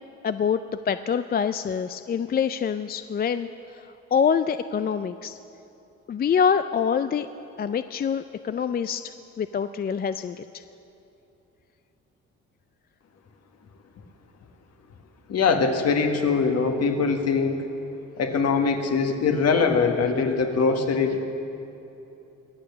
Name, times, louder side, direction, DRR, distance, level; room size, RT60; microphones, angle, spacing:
voice 1, 0.2-5.4 6.1-7.3 7.6-10.6, left 7 dB, 30° left, 11 dB, 0.4 m, -26 dB
voice 2, 15.3-17.6 18.2-21.2, left 5 dB, 55° left, 5 dB, 1.6 m, -22 dB
22.0 x 8.6 x 6.9 m, 2.9 s
cardioid pair, 90°, 30 cm